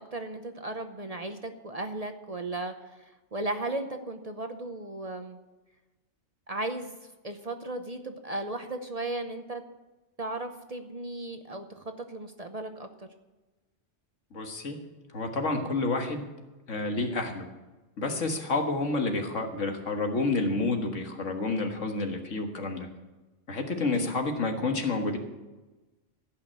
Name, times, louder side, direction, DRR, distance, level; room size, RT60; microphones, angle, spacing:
voice 1, 0.0-2.7 3.0-5.4 6.5-6.9 7.2-9.6 10.2-12.9 24.0-24.1, right 2 dB, 35° right, 6 dB, 0.8 m, -36 dB
voice 2, 14.3-14.8 15.1-16.3 16.7-17.5 18.0-22.9 23.5-25.2, left 3 dB, 80° left, 4 dB, 1.9 m, -29 dB
16.0 x 5.8 x 8.7 m, 1.1 s
omnidirectional pair, 1.3 m